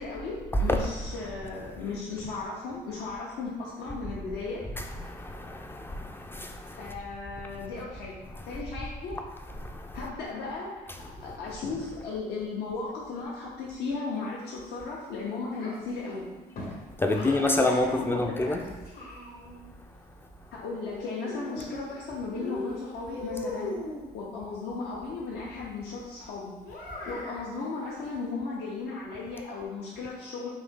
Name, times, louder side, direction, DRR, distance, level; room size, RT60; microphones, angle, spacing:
voice 1, 0.0-4.6 6.8-8.2 8.5-9.1 9.9-10.7 11.2-16.3 16.7-18.6 20.5-23.7 24.1-26.5 26.8-30.5, left 4 dB, 75° left, -5 dB, 0.7 m, -36 dB
voice 2, 4.8-6.9 8.3-8.5 9.6-10.0 17.0-18.6, left 1 dB, 15° left, 4 dB, 0.3 m, -28 dB
Child speech kid speaking, 15.5-17.5 18.4-19.7 20.8-22.0 22.3-24.1 26.6-27.5, left 2 dB, 60° left, 1.0 m, -39 dB
3.9 x 2.7 x 3.6 m, 1.2 s
cardioid pair, 110°, 17 cm